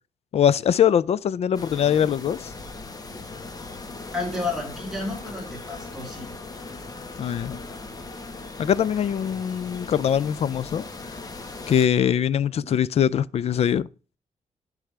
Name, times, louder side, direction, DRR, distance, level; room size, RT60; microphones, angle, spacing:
voice 1, 0.3-2.5 7.2-7.6 8.6-10.8 11.7-13.9, left 9 dB, 50° left, 0.4 m, -22 dB
sound 1, 1.5-11.9, left 3 dB, 30° left, 1.1 m, -39 dB
voice 2, 4.1-6.3 12.5-12.8, left 2 dB, 5° right, 3.4 m, -31 dB
11.5 x 4.9 x 3.3 m
wide cardioid pair, 135°, 14 cm